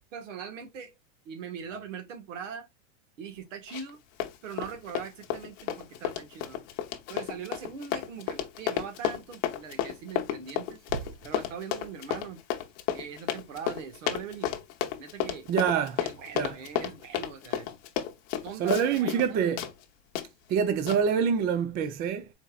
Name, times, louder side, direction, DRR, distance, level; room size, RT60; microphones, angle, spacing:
voice 1, 0.1-0.9 1.2-2.7 3.2-4.0 4.4-6.7 7.1-10.8 11.2-12.4 12.9-14.6 15.0-15.5 16.0-17.7 18.4-19.6, right 7 dB, 85° right, 1.6 m, -41 dB
Run, 3.7-19.3 19.6-19.7 20.2-20.3 20.9-21.0, left 11 dB, 40° left, 0.8 m, -32 dB
voice 2, 15.5-16.0 16.3-16.6 18.6-19.6 20.5-22.3, right 7 dB, 25° right, 0.5 m, -26 dB
4.3 x 4.0 x 2.4 m
supercardioid pair, 150°, 37 cm